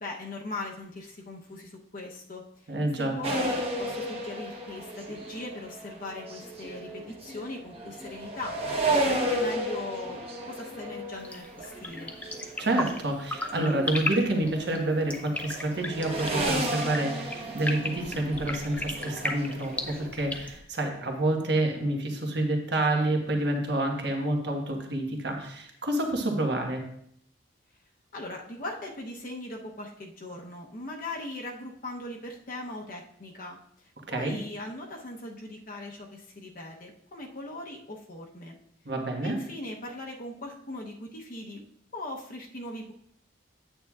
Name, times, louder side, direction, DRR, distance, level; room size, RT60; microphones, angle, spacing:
voice 1, 0.0-8.6 8.9-10.2 10.5-12.1 28.1-38.6 39.2-41.6 41.9-42.9, left 2 dB, 45° left, 0 dB, 0.8 m, -40 dB
voice 2, 2.7-3.1 12.6-26.8 34.1-34.4 38.8-39.4, right 1 dB, 60° right, 2 dB, 1.3 m, -28 dB
sound 1, 3.2-13.0 13.3-15.0 15.3-20.1, right 1 dB, 30° right, 1.1 m, -33 dB
sound 2, 11.2-20.6, left 2 dB, 10° left, 0.5 m, -36 dB
8.9 x 8.7 x 2.4 m, 0.70 s
head